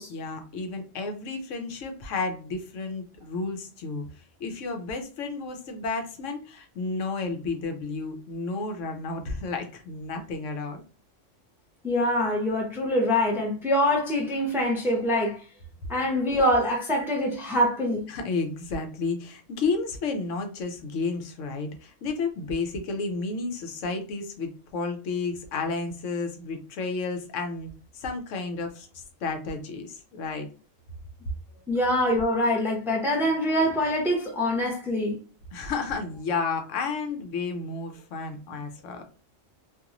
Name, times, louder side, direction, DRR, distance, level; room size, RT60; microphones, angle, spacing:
voice 1, 0.1-10.8 18.1-30.5 35.5-39.0, left 4 dB, 80° left, 1.0 m, -32 dB
voice 2, 11.8-15.4 15.9-18.1 31.7-35.2, left 1 dB, ahead, 0.6 m, -24 dB
2.9 x 2.6 x 2.5 m
omnidirectional pair, 1.3 m